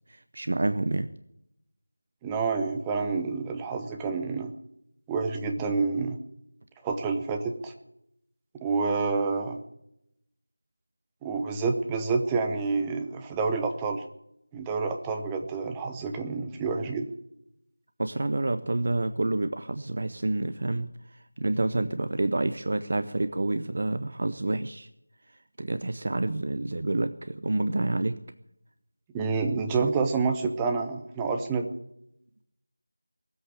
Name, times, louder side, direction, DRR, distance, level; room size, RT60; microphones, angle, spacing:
voice 1, 0.1-1.1 18.0-24.9 25.6-28.2, right 2 dB, 40° right, 10 dB, 0.7 m, -28 dB
voice 2, 2.2-4.5 5.1-6.2 6.8-7.7 8.6-9.6 11.2-14.0 14.5-17.1 29.1-31.7, right 4 dB, 10° right, 4 dB, 0.8 m, -28 dB
19.0 x 8.1 x 8.5 m, 0.80 s
figure-of-eight pair, 170°, 0 cm